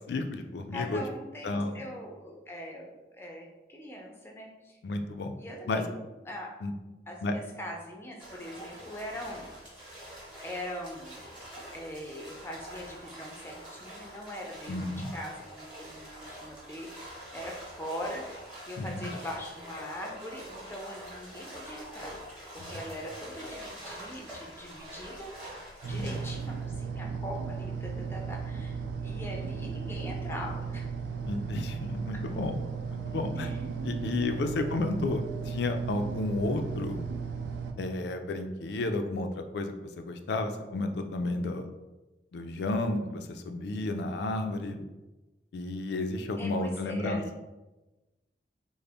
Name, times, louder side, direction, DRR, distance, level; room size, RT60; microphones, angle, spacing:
voice 1, 0.0-1.0 1.4-1.8 4.8-5.3 5.7-5.8 6.6-6.7 7.2-7.4 14.7-15.1 18.8-19.1 25.9-26.1 31.3-32.6 32.9-33.5 33.8-37.0 37.8-39.7 40.0-41.7 42.3-44.8 45.5-47.2, left 2 dB, 70° left, 6 dB, 0.4 m, -32 dB
voice 2, 0.7-2.9 3.1-4.8 5.4-6.5 7.1-9.5 10.4-11.3 11.7-14.8 15.1-18.2 18.7-25.3 25.9-30.9 33.4-33.6 46.4-47.3, left 1 dB, 15° left, 0 dB, 0.5 m, -41 dB
sound 1, 8.2-26.7, equal, 5° right, 0.9 m, -45 dB
sound 2, 25.8-37.7, right 5 dB, 90° right, 0.4 m, -36 dB
3.8 x 2.0 x 3.4 m, 1.1 s
head